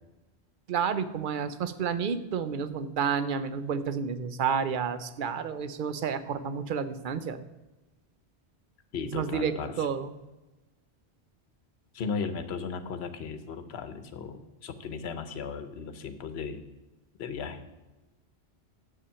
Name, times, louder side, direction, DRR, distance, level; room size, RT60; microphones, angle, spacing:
voice 1, 0.7-7.4 9.1-10.1, right 6 dB, 55° right, 12 dB, 0.7 m, -30 dB
voice 2, 8.9-9.7 11.9-16.7 17.2-17.6, left 5 dB, 75° left, 9 dB, 1.1 m, -36 dB
7.1 x 6.9 x 7.5 m, 1.1 s
omnidirectional pair, 1.1 m